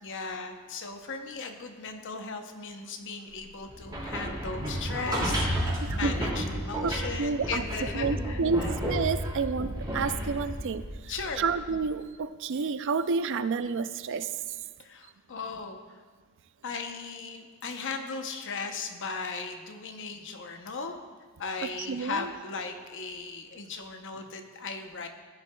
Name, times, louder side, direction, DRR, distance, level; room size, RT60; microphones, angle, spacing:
voice 1, 0.0-8.7 11.1-11.4 14.8-16.0 16.6-21.0 21.4-25.1, left 4 dB, 55° left, 5 dB, 0.8 m, -37 dB
sound 1, 3.7-11.7, equal, 20° right, 2.3 m, -32 dB
voice 2, 5.8-6.2 6.8-7.6 7.9-14.3 21.6-22.3, right 4 dB, 55° right, 13 dB, 0.4 m, -30 dB
15.5 x 10.5 x 2.3 m, 1.5 s
head